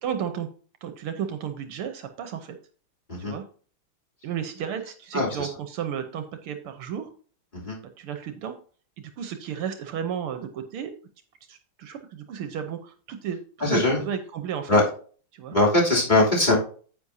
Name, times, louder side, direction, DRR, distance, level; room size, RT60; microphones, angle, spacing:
voice 1, 0.0-0.5 0.8-2.6 3.2-3.4 4.2-7.1 8.0-8.6 9.0-10.9 11.5-13.4 13.7-14.8 15.3-15.6, right 8 dB, 80° right, 7 dB, 1.8 m, -33 dB
voice 2, 5.1-5.5 7.5-7.8 13.6-14.0 14.7-14.8 15.5-16.6, left 2 dB, 20° left, -5 dB, 3.3 m, -21 dB
9.6 x 8.4 x 2.8 m, 0.42 s
omnidirectional pair, 2.4 m